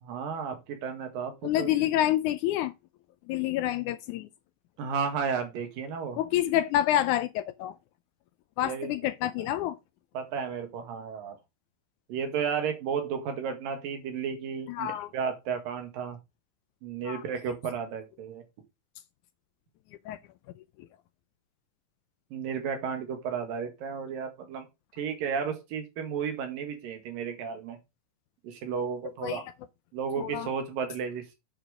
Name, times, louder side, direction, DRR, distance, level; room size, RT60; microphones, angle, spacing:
voice 1, 0.0-1.7 4.8-6.2 8.6-8.9 10.1-11.4 12.1-16.2 16.8-18.4 22.3-24.6 25.0-27.8 28.4-29.5 29.9-31.4, right 6 dB, 85° right, 3.5 m, -33 dB
voice 2, 1.4-2.7 3.3-4.3 6.2-7.7 8.6-9.8 14.7-15.1 17.1-17.2 20.1-20.2 29.2-29.4 30.2-30.5, left 12 dB, 80° left, 1.8 m, -28 dB
8.7 x 5.2 x 4.9 m
omnidirectional pair, 3.9 m